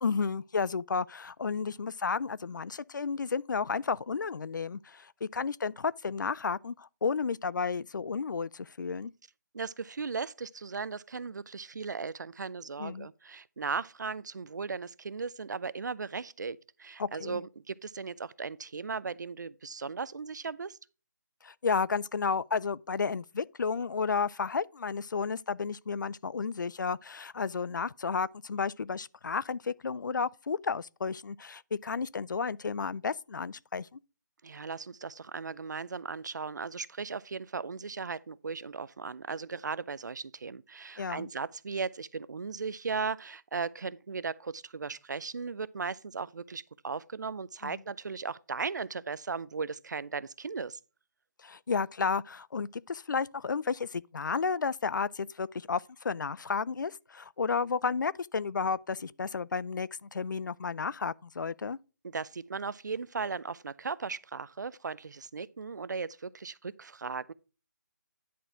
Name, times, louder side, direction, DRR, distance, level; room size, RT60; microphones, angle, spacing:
voice 1, 0.0-9.1 12.8-13.1 17.0-17.4 21.4-34.0 41.0-41.3 47.6-47.8 51.4-61.8, left 5 dB, 80° left, 0.4 m, -32 dB
voice 2, 9.5-20.8 34.4-50.8 62.0-67.3, right 5 dB, 70° right, 0.5 m, -37 dB
10.0 x 4.4 x 4.4 m
hypercardioid pair, 175°, 10 cm